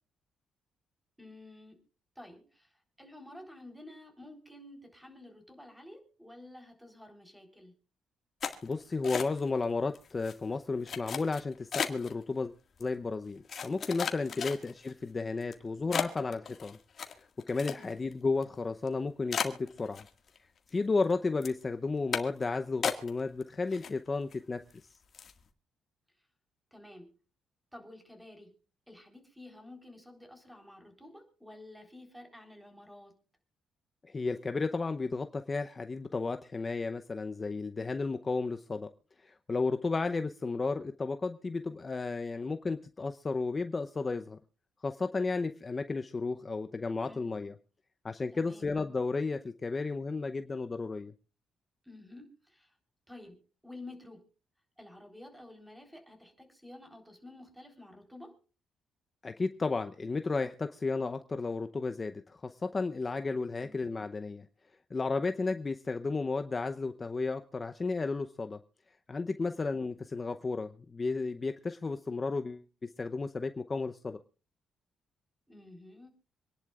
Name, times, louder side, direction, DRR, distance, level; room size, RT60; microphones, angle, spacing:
voice 1, 1.2-1.8 2.2-2.7 3.0-7.8 14.2-14.4 17.8-18.0 26.7-27.1 27.7-28.5 28.9-33.2 47.1-47.3 48.3-48.7 51.8-52.7 53.1-54.3 54.8-58.4 63.6-63.8 69.4-69.8 75.5-76.1, left 1 dB, 5° right, 5 dB, 3.9 m, -51 dB
sound 1, 8.4-9.6 9.9-10.3 10.9-12.1 12.8-12.9 13.5-14.9 15.4-15.5 15.9-18.1 18.4-18.5 18.9-19.0 19.3-20.4 20.7-21.1 21.4-21.6 22.1-22.4 22.8-23.4 23.7-24.3 24.7-24.8 25.1-25.4, left 7 dB, 50° left, 1.8 m, -35 dB
voice 2, 8.6-12.5 12.8-16.8 17.2-20.0 20.7-24.6 34.1-38.9 39.2-44.4 44.8-47.5 48.0-51.1 59.2-64.5 64.9-68.6 69.1-74.2, left 3 dB, 30° left, 8 dB, 0.7 m, -33 dB
26.5 x 10.5 x 2.4 m, 0.35 s
cardioid pair, 90°, 0 cm